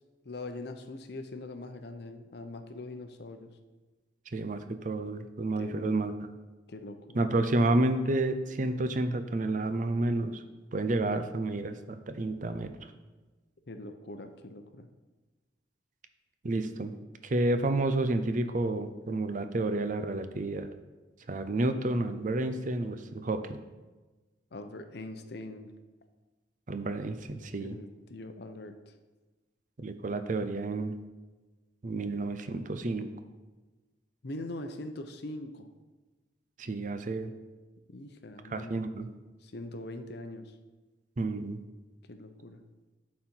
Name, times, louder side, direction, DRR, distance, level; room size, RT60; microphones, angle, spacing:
voice 1, 0.2-3.5 5.6-6.0 6.7-7.2 13.7-14.9 24.5-25.7 27.6-28.9 34.2-35.7 37.9-38.9 39.4-40.5 42.1-42.6, left 2 dB, 60° left, 8 dB, 0.7 m, -42 dB
voice 2, 4.3-6.1 7.1-10.4 10.7-12.7 16.4-16.9 17.2-20.7 21.3-23.4 26.7-27.8 29.8-31.0 31.8-33.1 36.6-37.3 38.5-39.1 41.2-41.6, right 2 dB, 45° right, 9 dB, 0.5 m, -30 dB
11.5 x 4.3 x 4.4 m, 1.2 s
head